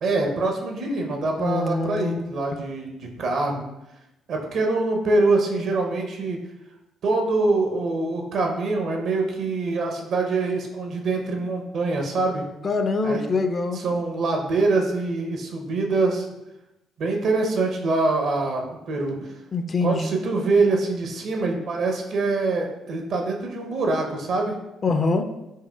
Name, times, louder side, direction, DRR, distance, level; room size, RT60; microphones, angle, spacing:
voice 1, 0.0-3.7 4.3-6.4 7.0-12.5 13.0-13.3 13.7-16.3 17.0-19.4 19.8-24.6, right 3 dB, 60° right, 2 dB, 0.6 m, -24 dB
voice 2, 1.4-2.4 12.6-13.8 19.5-20.1 24.8-25.3, left 3 dB, 40° left, 7 dB, 0.4 m, -24 dB
4.6 x 2.6 x 2.2 m, 0.92 s
hypercardioid pair, 50°, 0 cm